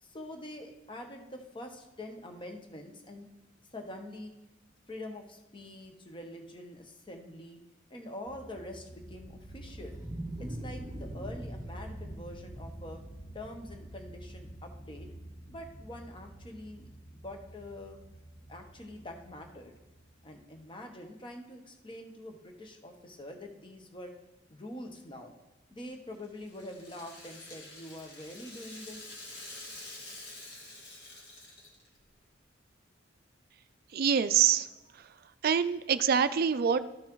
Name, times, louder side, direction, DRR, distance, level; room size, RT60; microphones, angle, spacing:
voice 1, 0.0-3.3 3.7-4.3 4.9-7.6 7.9-10.0 10.4-13.0 13.3-15.1 15.5-18.0 18.5-19.7 20.2-24.1 24.5-25.3 25.7-29.0, left 1 dB, 25° left, 3 dB, 0.9 m, -45 dB
sound 1, 8.2-20.6, right 1 dB, 75° left, 2.4 m, -47 dB
Wild animals, 9.0-14.0, right 1 dB, 20° right, 0.9 m, -44 dB
Rattle (instrument), 25.8-32.0, left 2 dB, 55° left, 1.8 m, -48 dB
voice 2, 33.9-34.7 35.4-36.9, right 7 dB, 50° right, 12 dB, 0.4 m, -25 dB
13.0 x 5.5 x 3.1 m, 1.0 s
head